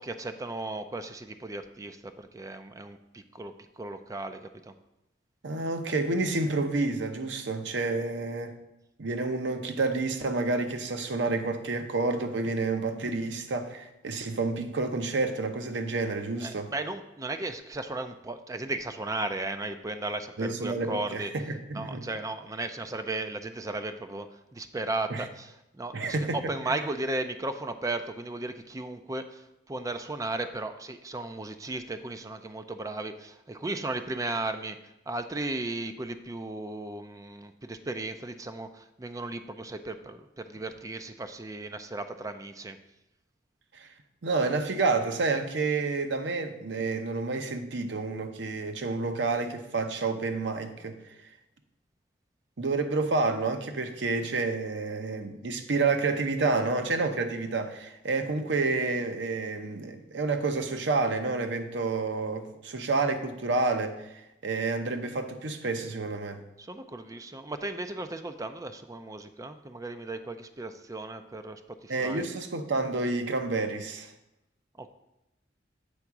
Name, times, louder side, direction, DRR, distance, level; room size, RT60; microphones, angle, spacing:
voice 1, 0.0-4.7 16.4-21.3 21.7-34.8 35.1-42.8 66.6-72.3 74.8-74.9, right 2 dB, 20° right, 0.4 m, -35 dB
voice 2, 5.4-8.5 9.0-16.7 20.4-22.1 25.1-25.2 25.9-26.4 26.7-26.8 43.7-43.9 44.2-51.0 52.6-66.4 71.9-74.1, right 3 dB, 70° right, 0.7 m, -29 dB
7.8 x 3.6 x 5.9 m
head